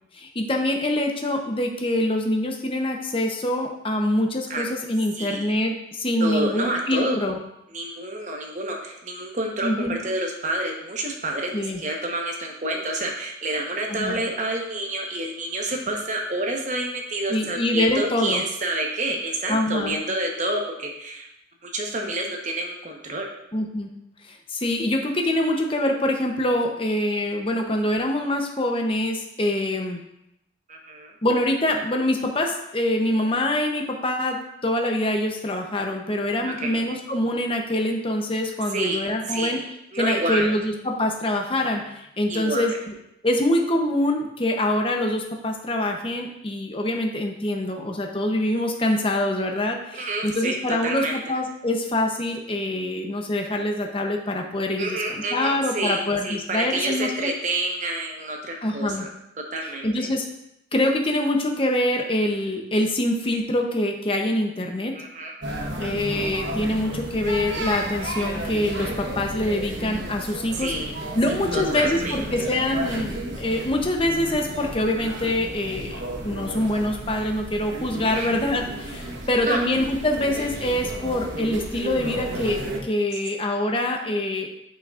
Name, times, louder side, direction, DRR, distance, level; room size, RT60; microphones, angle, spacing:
voice 1, 0.1-7.4 9.6-9.9 11.5-11.8 13.9-14.2 17.3-18.4 19.5-20.0 23.5-23.9 24.3-30.0 31.2-39.6 40.0-42.7 43.2-57.3 58.6-59.1 59.8-60.2 60.7-64.9 65.8-70.7 71.1-84.5, left 1 dB, 30° left, 2 dB, 0.7 m, -25 dB
voice 2, 5.1-5.5 6.2-7.2 7.7-21.3 21.6-23.3 30.7-31.1 36.6-36.8 38.7-39.6 39.9-40.5 42.3-42.7 49.9-51.2 54.8-59.1 59.5-60.1 64.9-65.3 70.5-70.9 71.5-72.2 78.1-78.3 79.4-79.6, right 2 dB, 40° right, 1 dB, 1.0 m, -28 dB
sound 1, 65.4-82.8, right 1 dB, 70° right, 1.1 m, -33 dB
9.6 x 5.9 x 2.5 m, 0.83 s
head